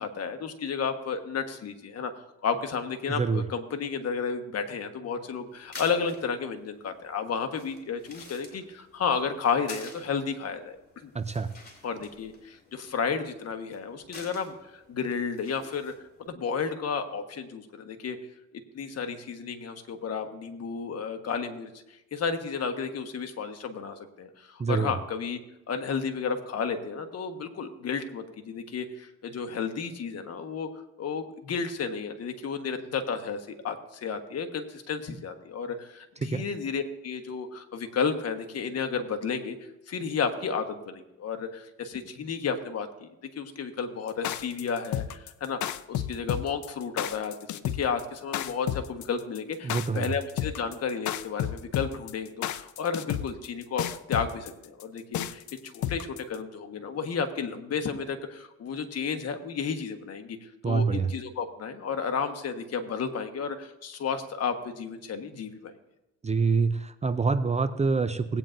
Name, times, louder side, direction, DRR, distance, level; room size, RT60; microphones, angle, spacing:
voice 1, 0.0-2.1 2.4-10.8 11.0-11.1 11.8-15.9 16.2-18.2 18.7-21.7 22.1-25.4 25.7-30.7 31.0-39.6 39.9-43.1 43.4-60.4 60.6-65.7, left 6 dB, 55° left, 7 dB, 1.3 m, -32 dB
voice 2, 3.1-3.5 11.1-11.5 24.6-24.9 36.2-36.5 49.6-50.1 60.6-61.1 66.2-68.4, right 4 dB, 25° right, 12 dB, 0.5 m, -26 dB
sound 1, 5.5-16.3, left 3 dB, 30° left, 2.9 m, -50 dB
sound 2, 44.1-56.3, left 11 dB, 75° left, 0.6 m, -32 dB
18.5 x 9.0 x 2.6 m, 0.93 s
cardioid pair, 90°, 30 cm